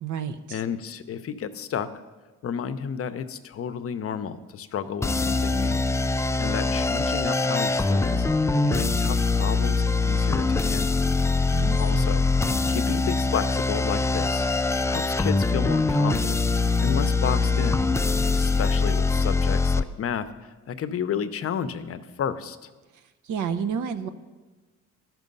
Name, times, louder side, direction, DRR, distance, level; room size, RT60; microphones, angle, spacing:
voice 1, 0.0-0.6 11.5-12.3 23.2-24.1, right 7 dB, 75° right, 10 dB, 0.8 m, -30 dB
voice 2, 0.5-1.9 2.4-5.8 6.1-11.0 11.8-12.3 12.7-17.8 18.3-22.7, left 7 dB, 50° left, 12 dB, 0.7 m, -32 dB
sound 1, 5.0-19.8, left 3 dB, 10° left, 0.3 m, -23 dB
12.5 x 6.0 x 5.4 m, 1.3 s
cardioid pair, 90°, 30 cm